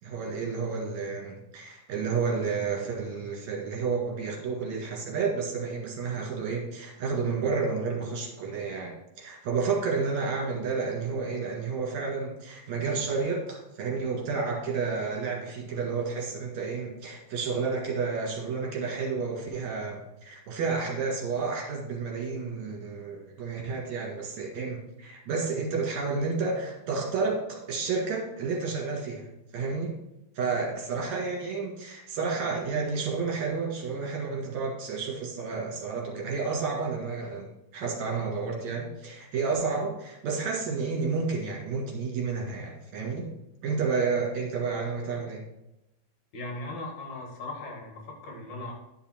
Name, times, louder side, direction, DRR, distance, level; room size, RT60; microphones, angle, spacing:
voice 1, 0.0-29.3 29.5-30.0 30.3-43.3 43.6-45.4, right 4 dB, 65° right, -1 dB, 3.1 m, -31 dB
voice 2, 46.3-48.7, left 2 dB, 70° left, 0 dB, 3.2 m, -38 dB
10.5 x 5.6 x 4.4 m, 0.89 s
omnidirectional pair, 3.5 m